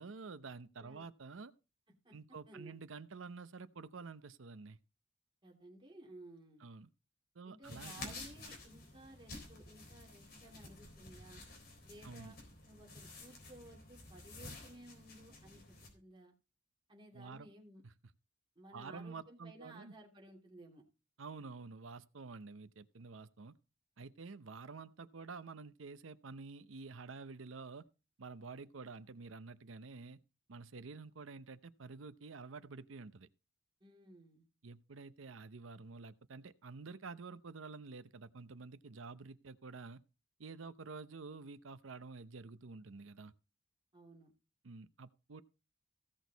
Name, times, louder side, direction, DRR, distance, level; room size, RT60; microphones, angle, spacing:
voice 1, 0.0-1.5 2.1-4.8 6.6-6.9 7.3-8.2 12.0-12.4 17.1-17.5 17.8-17.9 18.7-19.9 21.2-23.6 24.0-27.9 28.2-30.2 30.5-33.3 34.6-40.0 40.4-43.3 44.6-45.4, right 4 dB, 85° right, 0.7 m, -49 dB
voice 2, 5.4-6.6 7.4-11.4 11.8-12.4 12.6-16.3 16.9-17.8 18.6-20.8 33.8-34.4 43.9-44.3, right 1 dB, 25° right, 2.7 m, -57 dB
sound 1, 7.6-15.9, left 2 dB, 50° left, 3.9 m, -51 dB
16.0 x 6.3 x 4.0 m
head